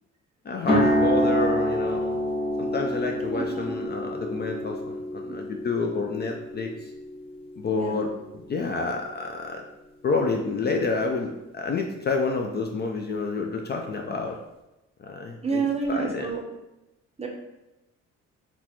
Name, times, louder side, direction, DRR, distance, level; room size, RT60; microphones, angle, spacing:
voice 1, 0.4-2.2 2.6-6.9 7.6-9.6 10.0-14.4 15.0-15.6 15.9-16.3, left 4 dB, 35° left, 1 dB, 0.4 m, -29 dB
sound 1, 0.6-8.6, equal, 20° left, 0.8 m, -27 dB
voice 2, 3.3-3.9 5.3-5.6 7.8-8.0 15.4-16.4 17.2-17.3, right 5 dB, 20° right, 1 dB, 0.6 m, -30 dB
2.9 x 2.3 x 4.0 m, 0.95 s
cardioid pair, 90°, 30 cm